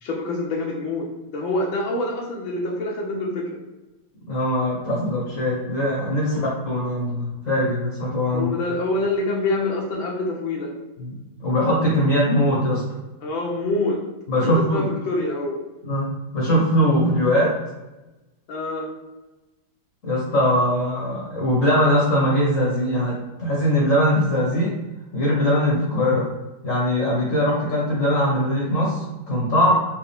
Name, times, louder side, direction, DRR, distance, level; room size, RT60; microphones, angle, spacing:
voice 1, 0.0-3.6 6.2-6.5 8.3-10.7 13.2-14.0 14.3-15.6 18.5-18.9 29.7-29.8, left 2 dB, 70° left, 0 dB, 1.4 m, -26 dB
voice 2, 4.3-6.4 6.6-8.5 11.0-12.8 14.3-14.8 15.8-16.1 16.3-17.5 20.0-24.7 25.1-26.3 26.6-29.7, equal, 45° left, -4 dB, 1.3 m, -21 dB
4.6 x 3.1 x 3.5 m, 1.1 s
omnidirectional pair, 2.3 m